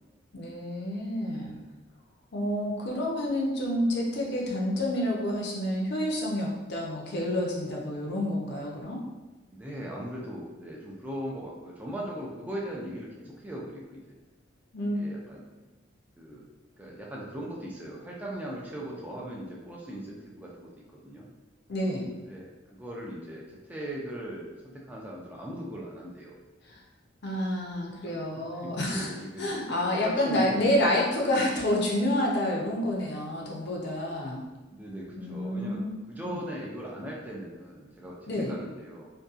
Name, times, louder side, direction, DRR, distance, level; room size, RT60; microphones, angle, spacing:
voice 1, 0.3-1.6 2.3-9.0 14.7-15.0 21.7-22.1 26.6-26.8 27.2-29.1 29.4-34.4 35.2-35.9 36.2-36.4 38.3-38.5, left 1 dB, 60° left, -2 dB, 0.5 m, -29 dB
voice 2, 9.5-14.2 14.9-15.4 16.2-16.4 16.8-21.3 22.2-26.3 28.0-29.6 29.9-31.0 34.7-35.8 36.1-39.1, equal, 10° right, -4 dB, 0.4 m, -39 dB
2.7 x 2.2 x 2.3 m, 1.2 s
head